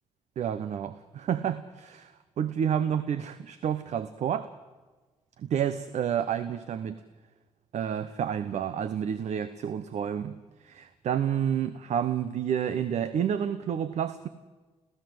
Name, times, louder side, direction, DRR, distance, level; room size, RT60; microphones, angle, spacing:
voice 1, 0.4-4.5 5.4-7.0 7.7-10.4 10.6-14.3, right 8 dB, 70° right, 12 dB, 1.0 m, -30 dB
29.0 x 15.5 x 7.9 m, 1.3 s
cardioid pair, 80°, 12 cm